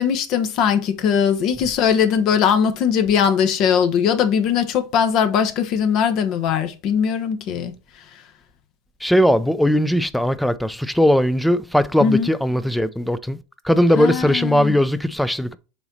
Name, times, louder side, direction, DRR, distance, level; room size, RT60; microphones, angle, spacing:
voice 1, 0.0-7.7 12.0-12.3 13.9-14.8, left 7 dB, 50° left, 1.1 m, -20 dB
voice 2, 9.0-13.4 13.6-15.5, equal, ahead, 0.5 m, -19 dB
6.9 x 3.9 x 4.1 m
hypercardioid pair, 95°, 0 cm